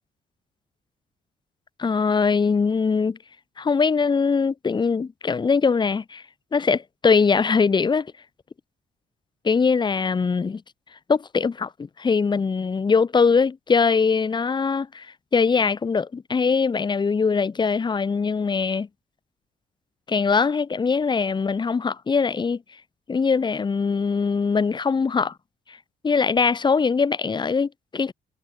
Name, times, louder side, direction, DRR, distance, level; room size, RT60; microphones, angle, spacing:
voice 1, 1.8-3.2 3.6-6.2 6.5-8.1 9.4-10.6 11.1-15.1 15.3-18.9 20.1-22.6 23.1-25.3 26.0-28.1, left 5 dB, 25° left, 0.5 m, -22 dB
hypercardioid pair, 45°, 19 cm